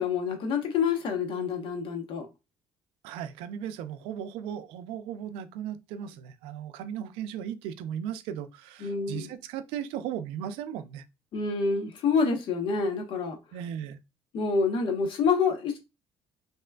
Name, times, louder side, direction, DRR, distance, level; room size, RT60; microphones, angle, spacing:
voice 1, 0.0-2.3 8.8-9.3 11.3-13.4 14.3-15.8, left 5 dB, 65° left, 0.9 m, -27 dB
voice 2, 3.0-11.0 13.5-14.0, right 9 dB, 90° right, 0.4 m, -36 dB
3.2 x 2.9 x 2.2 m
cardioid pair, 95°, 9 cm